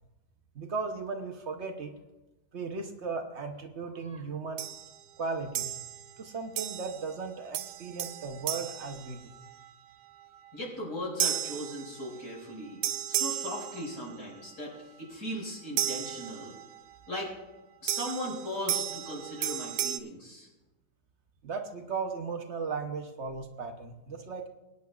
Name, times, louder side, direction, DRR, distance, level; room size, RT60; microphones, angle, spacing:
voice 1, 0.5-1.9 2.5-4.7 5.2-5.8 6.2-9.3 21.4-24.5, right 4 dB, 50° right, 4 dB, 1.0 m, -36 dB
sound 1, 4.6-5.0 5.5-6.1 6.6-7.1 7.5-9.7 11.2-12.4 12.8-14.3 15.8-16.8 17.9-20.0, right 11 dB, 85° right, 1.1 m, -34 dB
voice 2, 10.5-16.5 17.1-17.3 17.8-20.5, equal, 90° left, -4 dB, 5.8 m, -38 dB
23.0 x 9.7 x 2.3 m, 1.1 s
omnidirectional pair, 1.7 m